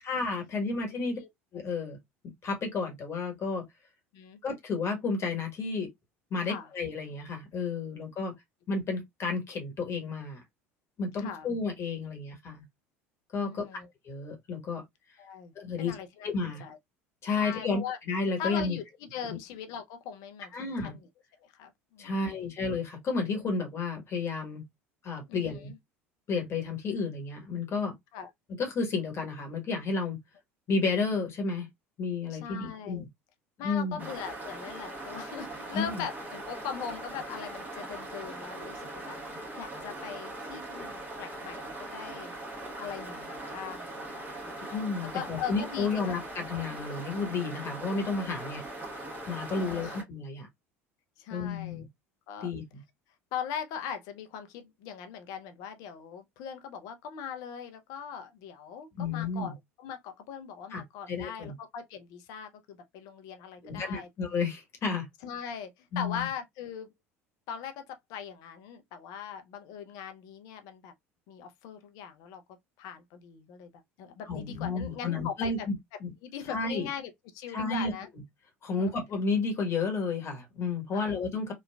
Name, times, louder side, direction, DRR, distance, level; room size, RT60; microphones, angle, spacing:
voice 1, 0.0-1.2 1.5-2.0 2.4-3.7 4.4-5.9 6.3-8.3 8.7-10.4 11.0-12.6 13.3-13.6 14.0-14.8 15.5-15.9 16.2-16.6 17.2-18.8 19.2-19.4 20.5-21.0 22.0-24.6 25.0-25.7 26.3-27.9 28.5-30.2 30.7-31.7 32.0-33.1 33.6-34.1 35.7-36.0 44.6-48.6 49.3-50.5 51.3-51.9 52.4-52.8 58.9-59.5 60.7-60.8 61.1-61.5 63.6-65.1 65.9-66.3 74.3-75.7 76.0-76.1 76.5-76.9 77.5-77.9 78.6-81.5, left 4 dB, 35° left, 1.2 m, -32 dB
voice 2, 0.9-1.3 4.1-4.4 6.4-6.7 11.2-11.5 13.4-13.9 15.2-16.3 16.6-16.8 17.4-18.0 18.4-20.5 20.8-21.1 21.4-22.4 25.3-25.8 28.1-28.3 32.3-33.0 33.6-39.2 39.5-42.3 42.7-44.6 45.1-46.2 49.5-50.0 51.2-51.9 52.3-52.5 53.3-64.1 65.2-66.9 67.5-70.9 71.3-72.4 72.8-73.7 74.0-75.7 76.2-78.1 78.7-78.9 80.9-81.1, left 8 dB, 55° left, 0.6 m, -40 dB
sound 1, 34.0-50.0, right 2 dB, 25° right, 1.3 m, -41 dB
3.0 x 2.3 x 2.2 m
figure-of-eight pair, 65°, 7 cm